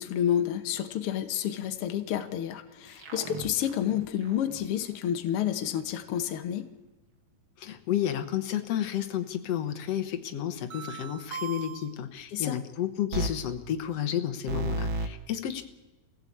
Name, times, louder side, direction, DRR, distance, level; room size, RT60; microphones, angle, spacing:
voice 1, 0.0-6.7 12.3-12.6, left 10 dB, 85° left, 7 dB, 1.2 m, -30 dB
sound 1, 2.8-4.6 10.7-11.9 13.1-13.3 14.5-15.1, right 2 dB, 50° right, 1.5 m, -34 dB
voice 2, 7.6-15.6, left 10 dB, 65° left, 8 dB, 1.6 m, -31 dB
23.0 x 16.0 x 8.6 m, 1.1 s
omnidirectional pair, 4.4 m